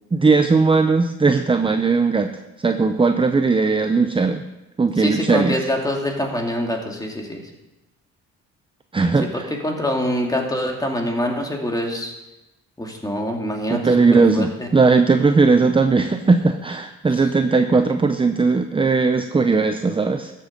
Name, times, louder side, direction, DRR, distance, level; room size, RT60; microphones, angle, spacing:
voice 1, 0.1-2.3 2.6-4.4 4.8-5.6 8.9-9.5 13.7-20.3, right 4 dB, 15° right, 7 dB, 0.6 m, -18 dB
voice 2, 5.0-7.4 9.3-12.1 12.8-14.7, left 1 dB, 10° left, 1 dB, 2.5 m, -25 dB
13.0 x 7.8 x 5.2 m, 1.0 s
cardioid pair, 90°, 30 cm